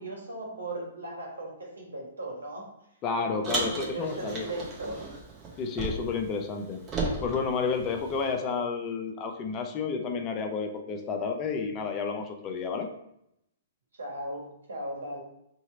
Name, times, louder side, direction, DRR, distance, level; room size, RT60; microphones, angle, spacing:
voice 1, 0.0-2.7 3.1-5.2 13.9-15.2, right 1 dB, 85° right, -1 dB, 1.2 m, -37 dB
voice 2, 3.0-4.5 5.6-6.8 7.2-12.9, left 5 dB, 30° left, 4 dB, 0.5 m, -31 dB
Car, 3.4-6.3 6.5-8.3, right 2 dB, 25° right, 0.9 m, -35 dB
2.9 x 2.8 x 4.1 m, 0.79 s
hypercardioid pair, 125°, 0 cm